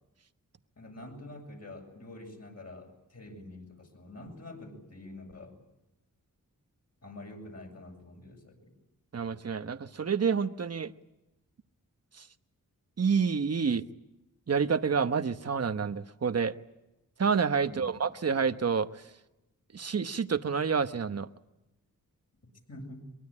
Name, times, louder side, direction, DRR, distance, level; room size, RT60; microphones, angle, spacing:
voice 1, 0.8-5.5 7.0-8.7 17.6-18.0 22.7-23.0, left 1 dB, 50° left, 2 dB, 7.5 m, -46 dB
voice 2, 9.1-10.9 13.0-13.8 14.5-16.5 17.2-18.9 19.7-21.3, right 6 dB, 45° right, 11 dB, 1.1 m, -28 dB
23.0 x 22.5 x 9.8 m, 0.95 s
wide cardioid pair, 90°, 34 cm